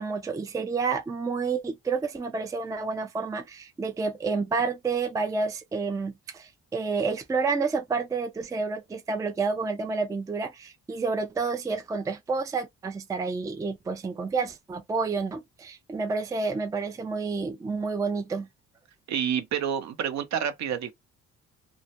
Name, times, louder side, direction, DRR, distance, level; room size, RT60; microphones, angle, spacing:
voice 1, 0.0-18.5, right 4 dB, 10° right, 0.4 m, -29 dB
voice 2, 19.1-20.9, right 8 dB, 65° right, 0.7 m, -28 dB
2.2 x 2.1 x 2.8 m
cardioid pair, 90°, 30 cm